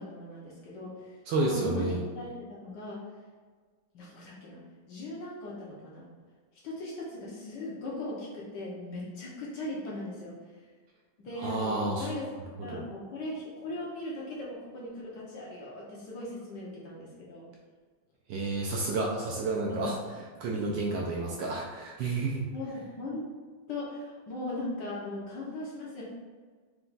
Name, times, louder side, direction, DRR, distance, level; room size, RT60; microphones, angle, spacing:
voice 1, 0.0-3.0 3.9-4.6 4.9-6.1 6.6-10.3 11.2-17.5 19.7-19.9 22.5-23.3 23.7-26.0, left 2 dB, 65° left, -5 dB, 1.2 m, -39 dB
voice 2, 1.3-2.0 11.4-12.1 12.7-12.8 18.3-20.0 20.4-22.4, right 3 dB, 75° right, -2 dB, 1.1 m, -30 dB
4.4 x 2.3 x 3.9 m, 1.5 s
omnidirectional pair, 2.4 m